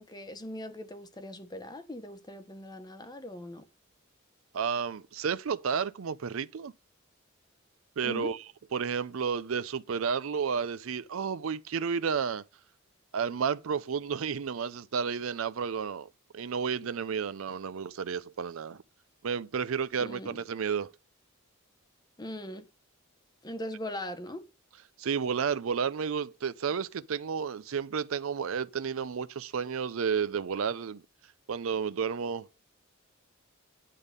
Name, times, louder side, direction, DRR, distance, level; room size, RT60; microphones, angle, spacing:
voice 1, 0.0-3.6 8.0-8.3 20.0-20.4 22.2-22.7 23.4-24.4, left 1 dB, 20° left, 1.0 m, -40 dB
voice 2, 4.5-6.7 8.0-8.4 8.7-12.4 13.1-16.1 16.3-18.8 19.2-20.9 25.0-31.0 31.5-32.5, right 6 dB, 70° right, 0.5 m, -31 dB
10.0 x 3.6 x 6.6 m
head